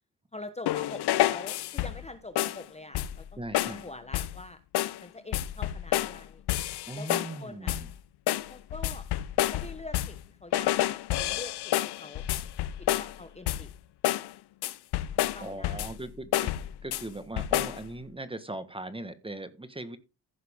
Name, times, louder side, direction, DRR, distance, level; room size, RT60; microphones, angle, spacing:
voice 1, 0.3-4.6 5.0-6.4 6.9-7.8 8.5-9.1 9.5-12.2 12.9-13.7 15.3-16.0, left 2 dB, 15° left, 9 dB, 1.0 m, -45 dB
sound 1, 0.7-2.1 2.4-2.6 2.9-3.3 3.5-3.8 4.1-4.4 4.7-5.0 5.3-6.2 6.5-7.4 7.7-7.9 8.3-10.2 10.5-13.2 13.5-13.8 14.0-14.3 14.6-16.0 16.3-17.0 17.4-17.8, left 14 dB, 65° left, 0.7 m, -29 dB
voice 2, 3.4-3.9 6.9-7.9 15.4-16.5 16.8-20.0, right 2 dB, 15° right, 11 dB, 1.4 m, -39 dB
15.0 x 5.7 x 3.6 m, 0.30 s
cardioid pair, 80°, 42 cm